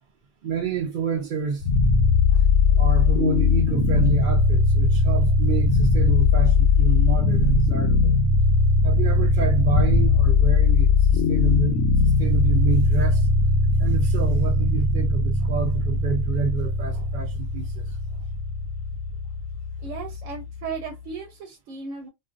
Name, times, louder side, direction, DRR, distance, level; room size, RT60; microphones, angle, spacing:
voice 1, 0.4-1.7 2.3-2.4 2.7-8.1 8.8-13.3 13.8-17.8, right 5 dB, 60° right, 0.5 m, -29 dB
sound 1, 1.6-20.7, left 3 dB, 85° left, 0.9 m, -20 dB
voice 2, 19.8-22.1, right 5 dB, 85° right, 1.0 m, -35 dB
2.4 x 2.2 x 2.4 m
omnidirectional pair, 1.3 m